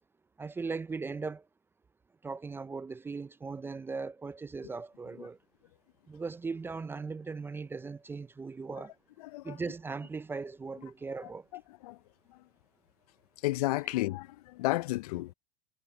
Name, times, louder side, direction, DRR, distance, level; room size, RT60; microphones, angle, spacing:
voice 1, 0.4-1.4 2.2-5.4 6.1-8.9 9.4-11.5, right 4 dB, 10° right, 0.4 m, -38 dB
voice 2, 9.2-9.6 11.5-12.0 12.3-12.4 13.4-15.3, left 19 dB, 80° left, 0.6 m, -32 dB
supercardioid pair, 125°, 19 cm